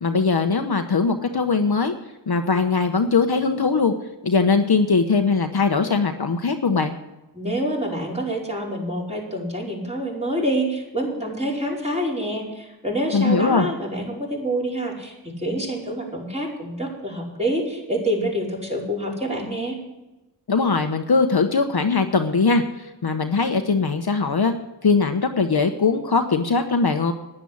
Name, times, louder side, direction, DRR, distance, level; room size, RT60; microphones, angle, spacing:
voice 1, 0.0-1.9 2.3-3.9 4.2-6.9 13.1-13.7 20.5-24.5 24.8-27.1, left 4 dB, 55° left, 6 dB, 1.1 m, -20 dB
voice 2, 7.3-19.8, right 1 dB, 15° right, -4 dB, 5.2 m, -27 dB
10.5 x 10.0 x 8.7 m, 0.99 s
wide cardioid pair, 55°, 45 cm